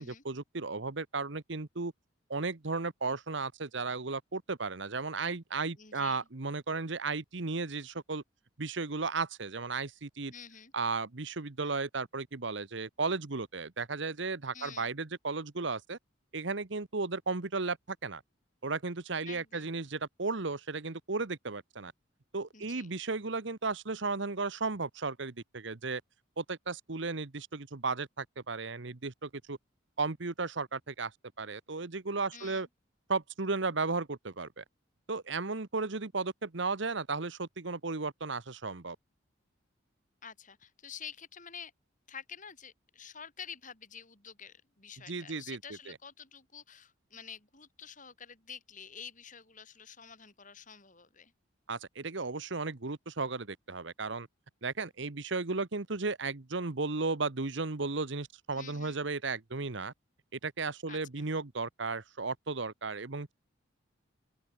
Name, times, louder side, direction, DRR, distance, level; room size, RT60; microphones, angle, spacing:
voice 1, 0.0-1.9 2.3-8.2 8.6-10.3 10.7-16.0 16.3-18.2 18.6-21.9 22.3-26.0 26.4-29.6 30.0-31.1 31.4-32.7 33.1-34.6 35.1-39.0 45.1-45.6 45.9-46.0 51.7-54.3 54.6-59.9 60.4-63.3, right 4 dB, 60° right, 1.1 m, -35 dB
voice 2, 5.8-6.3 10.3-10.7 14.5-15.0 19.2-19.7 22.5-22.9 32.3-32.7 40.2-41.7 42.1-51.3 58.5-59.0 60.9-61.3, left 7 dB, 40° left, 4.8 m, -49 dB
open air
head